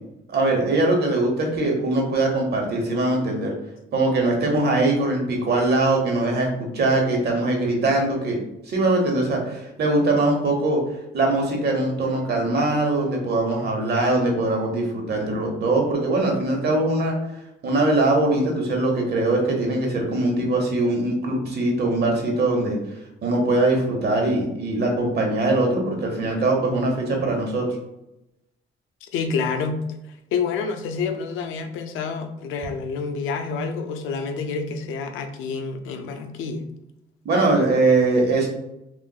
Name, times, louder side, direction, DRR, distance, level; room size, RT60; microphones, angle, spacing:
voice 1, 0.3-3.5 3.9-6.5 6.7-8.4 8.7-10.8 11.1-17.1 17.6-22.8 23.2-27.7 37.2-38.5, right 2 dB, 55° right, 1 dB, 1.0 m, -21 dB
voice 2, 29.0-36.6, left 5 dB, 90° left, 6 dB, 0.4 m, -28 dB
3.6 x 2.4 x 2.3 m, 0.87 s
cardioid pair, 90°, 20 cm